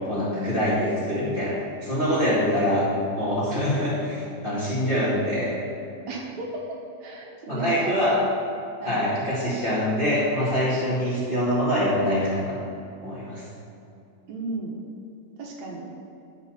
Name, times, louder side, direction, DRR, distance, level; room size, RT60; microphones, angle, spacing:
voice 1, 0.1-2.9 3.1-5.6 7.5-8.2 8.8-12.6 13.0-13.4, equal, 20° left, -9 dB, 1.9 m, -24 dB
voice 2, 6.1-6.6 7.0-8.0 8.8-9.0 14.3-14.8 15.4-15.9, right 2 dB, 75° right, -1 dB, 2.5 m, -34 dB
9.4 x 5.6 x 6.2 m, 2.7 s
omnidirectional pair, 3.3 m